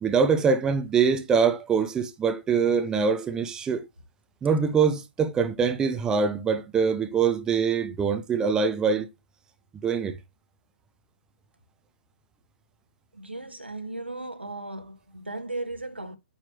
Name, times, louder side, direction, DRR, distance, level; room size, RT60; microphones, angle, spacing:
voice 1, 0.0-3.9 4.4-9.1 9.8-10.2, right 6 dB, 10° right, 0.8 m, -24 dB
voice 2, 13.1-16.2, right 2 dB, 85° right, 1.7 m, -36 dB
9.0 x 5.9 x 3.0 m
figure-of-eight pair, 125°, 6 cm